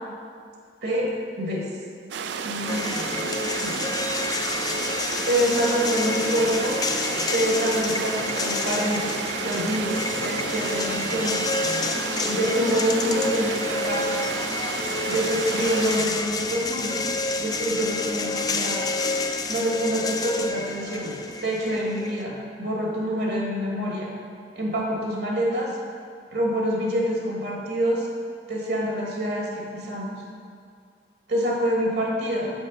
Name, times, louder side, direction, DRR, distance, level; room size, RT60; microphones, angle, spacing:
voice 1, 0.8-1.1 1.4-1.6 2.4-3.2 3.6-3.8 5.3-6.8 7.3-11.5 12.3-14.2 15.1-17.0 17.4-18.9 19.5-21.1 21.4-24.1 24.5-25.7 26.3-28.1 28.5-30.2 31.3-32.5, equal, 65° right, -2 dB, 1.5 m, -26 dB
sound 1, 2.1-16.1, right 6 dB, 90° right, 0.4 m, -31 dB
sound 2, 2.7-22.2, left 3 dB, 20° left, 0.4 m, -29 dB
6.2 x 5.4 x 5.2 m, 2.2 s
head